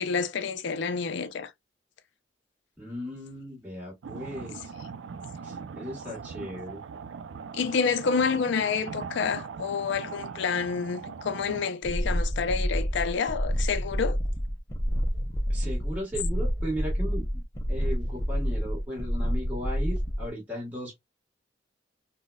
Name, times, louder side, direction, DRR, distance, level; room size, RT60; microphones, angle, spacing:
voice 1, 0.0-1.5 7.5-14.2, left 5 dB, 65° left, 0.4 m, -28 dB
voice 2, 2.8-4.7 5.4-6.8 15.5-21.0, equal, 10° right, 1.2 m, -36 dB
sound 1, 4.0-11.7, right 5 dB, 75° right, 0.4 m, -40 dB
sound 2, 11.8-20.3, equal, 15° left, 0.6 m, -28 dB
3.8 x 2.1 x 2.2 m
head